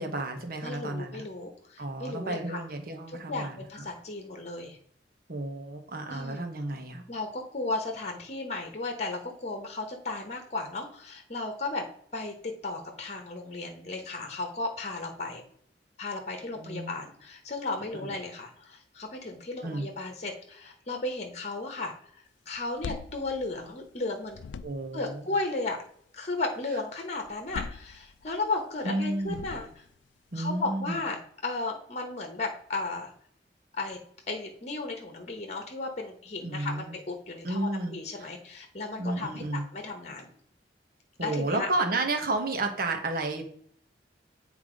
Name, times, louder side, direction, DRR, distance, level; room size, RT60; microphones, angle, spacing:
voice 1, 0.0-1.2 1.8-3.9 5.3-7.0 16.6-16.9 17.9-18.1 19.6-19.9 24.6-25.2 28.8-29.4 30.3-31.1 36.4-36.9 37.4-38.0 39.0-39.6 41.2-43.4, right 2 dB, 55° right, 4 dB, 1.3 m, -32 dB
voice 2, 0.6-2.6 3.1-4.8 6.1-6.4 7.1-11.8 12.1-15.4 16.0-22.0 22.5-24.4 24.9-25.8 26.1-29.7 30.3-33.1 33.8-34.0 34.3-40.3 41.2-41.7, left 3 dB, 40° left, 4 dB, 1.1 m, -35 dB
sound 1, 22.5-24.0 24.3-25.1 27.2-28.5 29.2-30.0, left 5 dB, 85° left, 0.4 m, -42 dB
8.1 x 3.5 x 5.0 m, 0.63 s
head